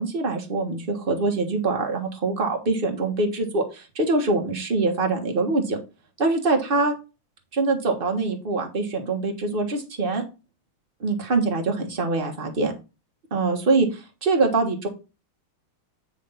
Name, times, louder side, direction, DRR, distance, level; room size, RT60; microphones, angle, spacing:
voice 1, 0.0-5.8 6.2-6.9 7.5-10.2 11.0-12.7 13.3-14.9, right 3 dB, 30° right, 2 dB, 1.3 m, -24 dB
9.1 x 3.4 x 5.6 m, 0.30 s
omnidirectional pair, 2.4 m